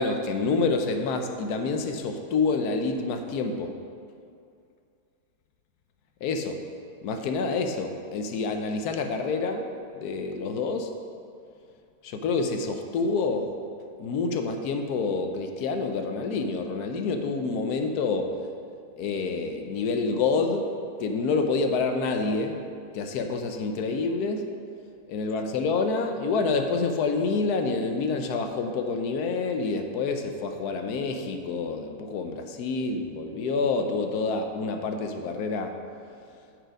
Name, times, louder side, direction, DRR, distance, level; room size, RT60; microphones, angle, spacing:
voice 1, 0.0-3.7 6.2-6.6 7.0-9.6 10.0-10.9 12.0-13.5 14.0-18.3 19.0-20.7 21.0-22.6 22.9-24.4 25.1-35.7, left 4 dB, 80° left, 5 dB, 1.2 m, -27 dB
8.8 x 4.8 x 5.1 m, 2.4 s
omnidirectional pair, 1.6 m